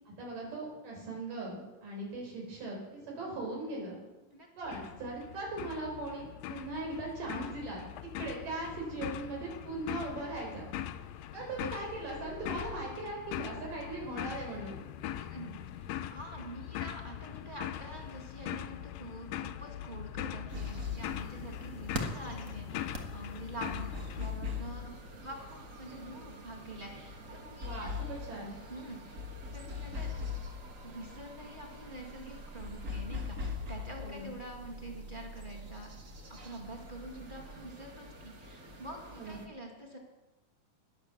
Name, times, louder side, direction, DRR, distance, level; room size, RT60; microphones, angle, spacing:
voice 1, 0.2-4.0 4.6-10.6 11.3-14.8 27.6-28.6 34.0-34.3 39.1-39.4, right 2 dB, 90° right, -2 dB, 6.0 m, -39 dB
voice 2, 4.3-4.8 15.1-27.9 28.7-29.2 29.5-30.1 30.8-35.9 36.3-40.0, right 1 dB, 20° right, 0 dB, 1.7 m, -46 dB
sound 1, 4.6-24.3, left 11 dB, 85° left, 1.4 m, -41 dB
sound 2, 20.5-39.5, left 3 dB, 45° right, 1.1 m, -42 dB
sound 3, 25.3-37.5, right 2 dB, 65° right, 3.6 m, -52 dB
12.0 x 11.0 x 7.2 m, 1.1 s
omnidirectional pair, 3.6 m